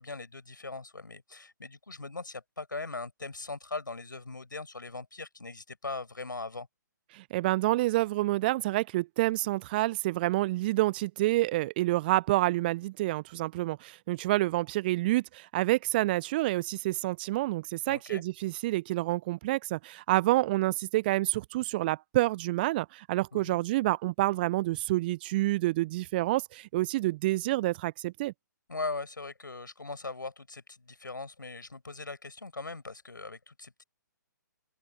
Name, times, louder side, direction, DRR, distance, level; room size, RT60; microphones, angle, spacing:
voice 1, 0.0-6.7 17.8-18.2 23.3-23.6 28.7-33.8, left 3 dB, 75° left, 5.6 m, -40 dB
voice 2, 7.1-28.3, right 18 dB, 30° right, 0.6 m, -28 dB
open air
figure-of-eight pair, 130°, 11 cm